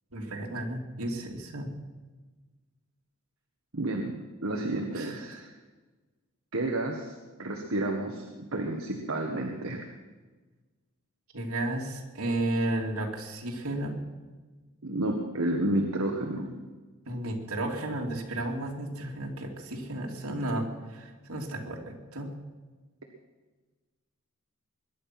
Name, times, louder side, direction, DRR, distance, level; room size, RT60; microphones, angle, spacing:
voice 1, 0.1-1.7 4.9-5.4 11.3-14.0 17.1-22.3, right 1 dB, 85° right, 0 dB, 2.6 m, -33 dB
voice 2, 3.7-5.5 6.5-7.1 7.4-9.8 14.8-16.6, right 1 dB, 70° right, 3 dB, 1.6 m, -31 dB
22.0 x 10.5 x 6.0 m, 1.3 s
head